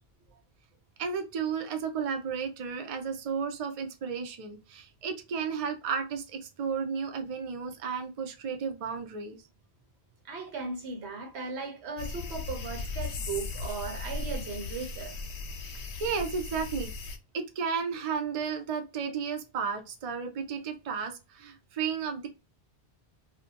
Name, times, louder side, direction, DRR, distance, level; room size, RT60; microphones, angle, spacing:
voice 1, 1.0-9.4 15.6-15.7 16.0-16.9 17.3-22.3, right 6 dB, 50° right, 0.4 m, -33 dB
voice 2, 10.2-15.2, right 4 dB, 85° right, 1.1 m, -37 dB
sound 1, 12.0-17.2, left 3 dB, 90° left, 0.9 m, -37 dB
2.6 x 2.1 x 2.7 m
omnidirectional pair, 1.1 m